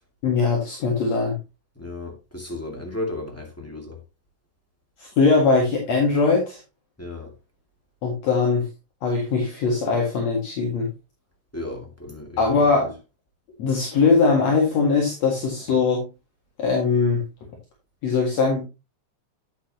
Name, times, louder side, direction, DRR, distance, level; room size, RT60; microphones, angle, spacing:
voice 1, 0.2-1.4 5.0-6.6 8.0-8.7 9.0-10.9 12.4-13.0 13.6-16.1 16.6-17.2 18.0-18.7, left 4 dB, 60° left, 3.0 m, -21 dB
voice 2, 1.7-4.0 7.0-7.3 11.5-12.6, left 2 dB, 5° left, 1.3 m, -34 dB
9.9 x 8.0 x 2.8 m
omnidirectional pair, 3.5 m